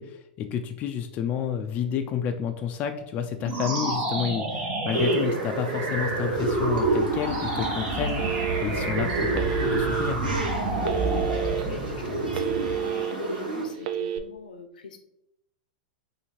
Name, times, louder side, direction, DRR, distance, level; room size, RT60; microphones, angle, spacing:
voice 1, 0.0-10.2, left 8 dB, 35° left, 6 dB, 0.3 m, -30 dB
sound 1, 3.4-12.9, right 2 dB, 30° right, 0.9 m, -29 dB
sound 2, 4.9-13.6, right 2 dB, 90° right, 1.4 m, -31 dB
Telephone, 8.2-8.9 9.3-10.1 10.8-11.6 12.1-13.1 13.8-14.2, right 10 dB, 55° right, 0.4 m, -29 dB
voice 2, 10.9-15.0, left 3 dB, 80° left, 7 dB, 0.6 m, -45 dB
2.8 x 2.7 x 4.3 m, 0.79 s
hypercardioid pair, 115°, 5 cm